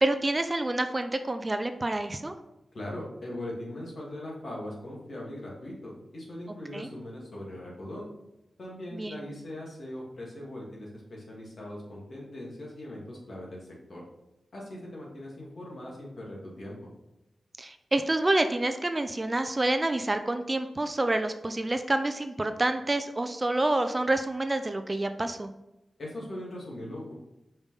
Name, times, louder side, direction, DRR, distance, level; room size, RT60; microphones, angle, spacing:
voice 1, 0.0-2.3 6.7-6.9 8.9-9.2 17.6-25.5, right 2 dB, 25° right, 8 dB, 0.4 m, -28 dB
voice 2, 2.7-8.1 8.6-14.0 14.5-16.8 26.0-27.1, left 1 dB, 60° left, -3 dB, 2.3 m, -40 dB
5.3 x 5.3 x 4.9 m, 0.91 s
wide cardioid pair, 135°, 0 cm